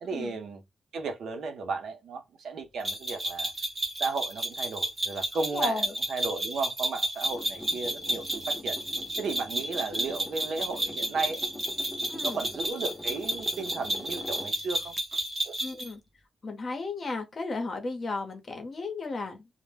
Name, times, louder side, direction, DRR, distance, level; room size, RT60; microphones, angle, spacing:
voice 1, 0.0-0.6 0.9-3.5 4.0-8.8 9.2-11.4 12.1-15.0 15.4-15.5, right 4 dB, 85° right, 0.6 m, -34 dB
sound 1, 2.8-15.9, right 1 dB, 35° right, 0.9 m, -32 dB
voice 2, 5.5-5.9 12.1-12.4 15.6-16.0 16.4-19.5, left 3 dB, 45° left, 0.7 m, -34 dB
sound 2, 7.2-15.0, left 1 dB, 15° left, 0.5 m, -44 dB
2.1 x 2.0 x 3.2 m
cardioid pair, 105°, 0 cm